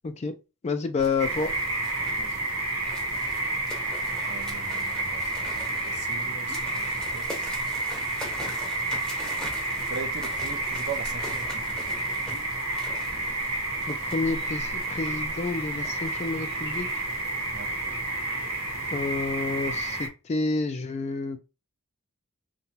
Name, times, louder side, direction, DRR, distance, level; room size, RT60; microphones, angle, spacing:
voice 1, 0.6-1.5 13.9-16.9 18.9-21.4, left 3 dB, 30° left, 0.3 m, -29 dB
sound 1, 1.0-18.0, equal, 5° left, 0.7 m, -43 dB
sound 2, 1.2-20.1, right 2 dB, 85° right, 0.9 m, -30 dB
voice 2, 4.3-7.5 9.9-11.8 17.5-17.8, right 4 dB, 50° right, 0.4 m, -40 dB
2.8 x 2.2 x 2.7 m
head